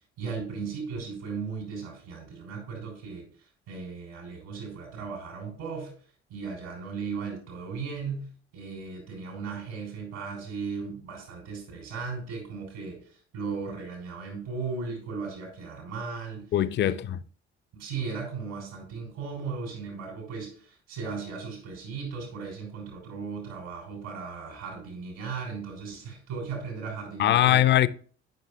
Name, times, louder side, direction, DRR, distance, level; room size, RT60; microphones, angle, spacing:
voice 1, 0.2-3.3 3.7-5.9 6.3-16.5 16.8-16.9 17.7-27.6, right 5 dB, 65° right, 3.3 m, -36 dB
voice 2, 16.5-17.2 27.2-27.9, left 13 dB, 35° left, 0.4 m, -21 dB
10.5 x 5.7 x 2.2 m
figure-of-eight pair, 45°, 35 cm